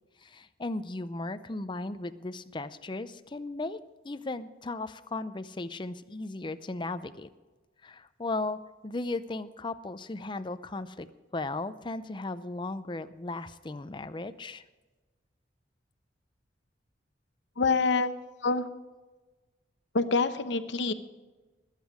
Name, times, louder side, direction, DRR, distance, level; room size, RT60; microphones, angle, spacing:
voice 1, 0.2-3.8 4.0-7.3 7.8-11.1 11.3-14.6, left 2 dB, 25° left, 12 dB, 0.6 m, -36 dB
voice 2, 17.6-18.1 18.4-18.6 19.9-20.9, left 4 dB, 75° left, 10 dB, 0.9 m, -26 dB
20.0 x 8.3 x 4.9 m, 1.2 s
head